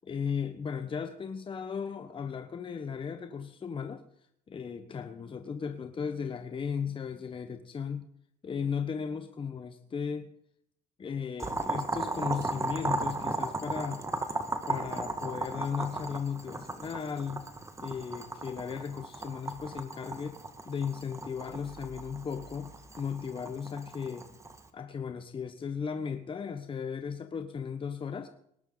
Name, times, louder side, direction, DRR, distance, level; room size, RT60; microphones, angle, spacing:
voice 1, 0.0-4.0 4.5-8.0 8.4-10.3 11.0-14.0 14.7-17.5 17.8-20.4 20.6-24.3 24.7-28.3, left 6 dB, 30° left, 8 dB, 1.2 m, -36 dB
Boiling, 11.4-24.7, right 2 dB, 15° right, 1.8 m, -36 dB
19.5 x 11.0 x 4.0 m, 0.71 s
cardioid pair, 100°, 17 cm